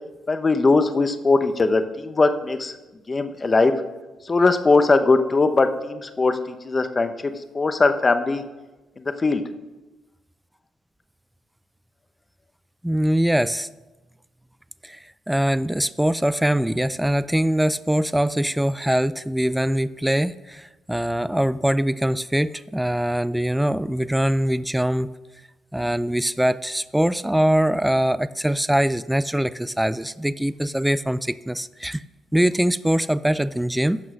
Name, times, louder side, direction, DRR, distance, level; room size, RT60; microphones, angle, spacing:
voice 1, 0.3-2.7 3.1-3.7 4.2-8.4 9.0-9.4, left 3 dB, 30° left, 9 dB, 0.8 m, -20 dB
voice 2, 12.8-13.7 14.8-15.0 15.3-25.1 25.7-32.0 32.3-34.0, right 1 dB, 5° right, 16 dB, 0.3 m, -22 dB
10.5 x 6.3 x 6.3 m, 1.1 s
cardioid pair, 90°, 0 cm